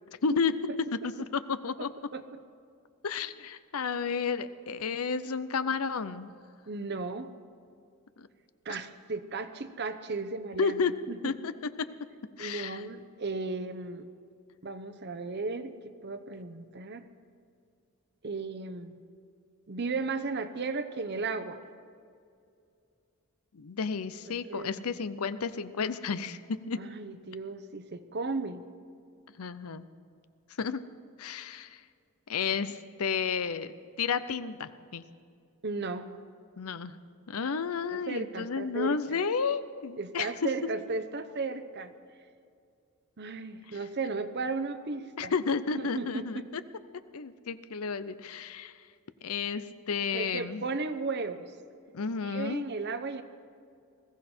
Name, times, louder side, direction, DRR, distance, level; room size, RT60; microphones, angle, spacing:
voice 1, 0.2-0.5 1.3-1.9 3.0-6.3 8.2-8.3 8.7-8.8 10.6-10.9 11.2-11.5 11.8-11.9 12.4-12.8 23.5-26.8 29.4-29.8 30.6-30.8 31.2-31.8 32.3-33.7 34.0-35.0 36.6-36.9 37.3-40.3 45.2-46.6 47.1-48.8 49.2-50.7 51.9-52.6, left 5 dB, 75° left, 13 dB, 0.7 m, -32 dB
voice 2, 1.8-2.2 6.7-7.3 8.6-11.3 12.4-14.1 14.6-15.7 16.0-17.0 18.2-19.0 19.7-21.6 24.5-24.8 26.8-28.6 35.6-36.1 37.9-39.2 40.0-41.9 43.2-45.3 45.8-46.4 50.1-51.5 52.2-53.2, right 3 dB, 50° right, 10 dB, 0.9 m, -35 dB
20.5 x 15.5 x 4.4 m, 2.4 s
head